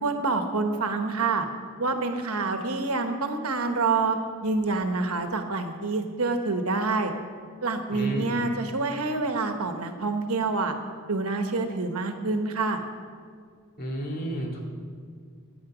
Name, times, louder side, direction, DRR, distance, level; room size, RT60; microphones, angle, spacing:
voice 1, 0.0-1.4 1.8-4.2 4.4-7.1 7.6-10.7 11.1-12.8, right 3 dB, 70° right, 6 dB, 1.2 m, -27 dB
voice 2, 7.9-8.4 13.8-14.6, equal, 45° left, -1 dB, 2.5 m, -32 dB
15.5 x 9.8 x 5.0 m, 2.1 s
head